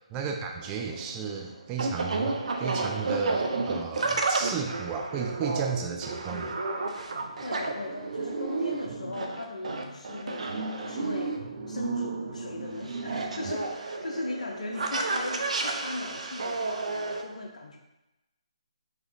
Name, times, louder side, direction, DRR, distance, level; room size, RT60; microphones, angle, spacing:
voice 1, 0.0-6.6, right 6 dB, 20° right, 2 dB, 0.4 m, -33 dB
sound 1, 0.6-17.2, right 3 dB, 70° right, 0.6 m, -32 dB
voice 2, 7.4-11.4 11.7-17.8, left 2 dB, 75° left, 1 dB, 0.6 m, -38 dB
4.8 x 2.9 x 3.3 m, 0.97 s
figure-of-eight pair, 150°, 4 cm